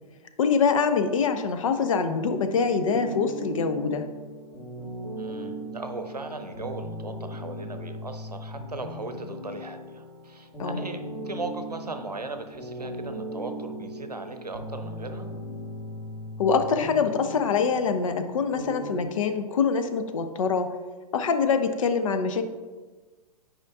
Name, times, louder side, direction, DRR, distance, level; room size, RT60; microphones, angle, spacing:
voice 1, 0.4-4.1 10.6-10.8 16.4-20.7 21.1-22.4, left 5 dB, 55° left, 8 dB, 0.6 m, -24 dB
sound 1, 2.8-19.1, equal, 15° left, 1.9 m, -38 dB
voice 2, 5.2-15.3, right 3 dB, 90° right, 7 dB, 0.7 m, -38 dB
9.6 x 5.1 x 2.4 m, 1.3 s
figure-of-eight pair, 110°, 20 cm